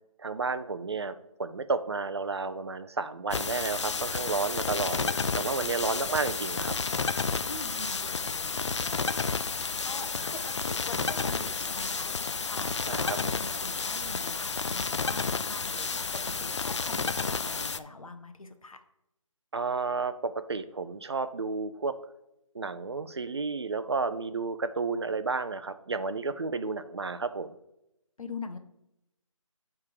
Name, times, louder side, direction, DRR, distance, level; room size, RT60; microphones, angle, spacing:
voice 1, 0.2-6.7 12.9-13.2 19.5-21.9 22.5-27.5, right 4 dB, 50° right, 11 dB, 0.5 m, -32 dB
sound 1, 3.3-17.8, left 4 dB, 55° left, 0.4 m, -31 dB
voice 2, 7.5-9.2 9.8-12.1 12.5-18.8 28.2-28.6, left 3 dB, 80° left, 7 dB, 1.0 m, -43 dB
9.6 x 3.6 x 4.8 m, 0.85 s
figure-of-eight pair, 175°, 18 cm